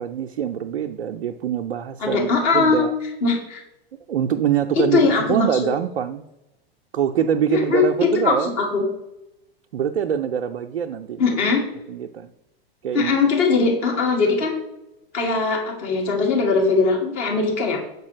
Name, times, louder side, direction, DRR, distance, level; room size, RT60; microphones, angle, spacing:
voice 1, 0.0-2.9 4.1-6.2 6.9-8.6 9.7-11.4 11.9-12.3 12.8-13.2, right 9 dB, 80° right, 5 dB, 0.5 m, -24 dB
voice 2, 2.0-2.8 3.2-3.6 4.8-5.5 7.5-8.8 11.2-11.6 12.9-14.5 15.1-17.8, left 4 dB, 50° left, -1 dB, 2.1 m, -20 dB
6.7 x 4.7 x 4.9 m, 0.91 s
figure-of-eight pair, 95°, 31 cm